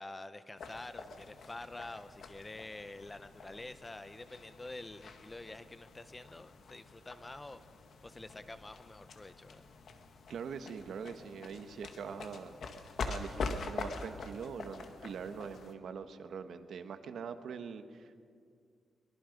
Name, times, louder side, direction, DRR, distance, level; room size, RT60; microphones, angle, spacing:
voice 1, 0.0-7.6 8.0-9.7, left 2 dB, 20° left, 12 dB, 0.8 m, -47 dB
sound 1, 0.6-15.7, left 4 dB, 65° left, 1.7 m, -45 dB
voice 2, 10.3-12.5 13.0-18.3, right 6 dB, 75° right, 9 dB, 1.3 m, -43 dB
23.0 x 23.0 x 5.3 m, 2.1 s
cardioid pair, 110°, 0 cm